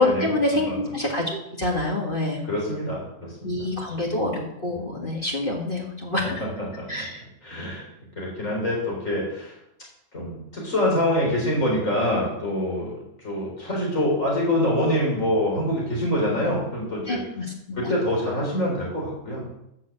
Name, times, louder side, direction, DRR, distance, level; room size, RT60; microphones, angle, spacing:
voice 1, 0.0-2.4 3.4-6.4 6.9-7.2 17.1-18.0, left 2 dB, 40° left, -1 dB, 2.1 m, -26 dB
voice 2, 2.4-3.5 6.8-7.1 7.4-7.9 8.2-9.6 10.1-12.9 13.2-17.2 17.8-19.5, left 1 dB, 65° left, -3 dB, 4.6 m, -25 dB
13.5 x 6.4 x 7.7 m, 0.82 s
omnidirectional pair, 1.5 m